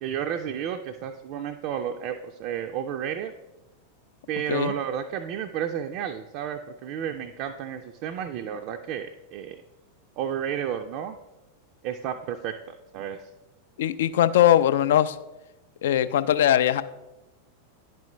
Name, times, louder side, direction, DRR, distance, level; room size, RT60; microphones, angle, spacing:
voice 1, 0.0-3.3 4.3-9.6 10.2-11.2 11.8-13.3, right 9 dB, 45° right, 5 dB, 0.4 m, -32 dB
voice 2, 13.8-15.2 15.8-16.8, left 11 dB, 55° left, 14 dB, 0.3 m, -20 dB
10.5 x 4.7 x 3.0 m, 1.0 s
figure-of-eight pair, 90°, 0 cm